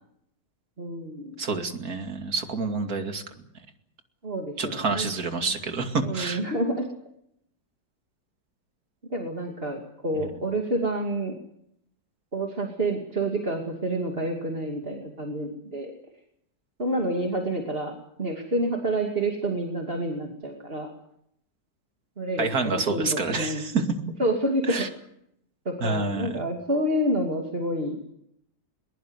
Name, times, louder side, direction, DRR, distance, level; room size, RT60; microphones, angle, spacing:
voice 1, 0.8-1.4 4.2-5.1 6.0-6.9 9.1-11.3 12.3-15.9 16.8-17.9 18.2-20.9 22.2-23.6 24.2-24.9 25.7-28.0, right 1 dB, 30° right, 1 dB, 2.7 m, -28 dB
voice 2, 1.4-3.2 4.6-6.4 10.1-10.3 22.4-23.8 24.7-24.9 25.8-26.3, right 3 dB, 55° right, 5 dB, 2.8 m, -28 dB
22.5 x 22.0 x 8.2 m, 0.74 s
omnidirectional pair, 1.9 m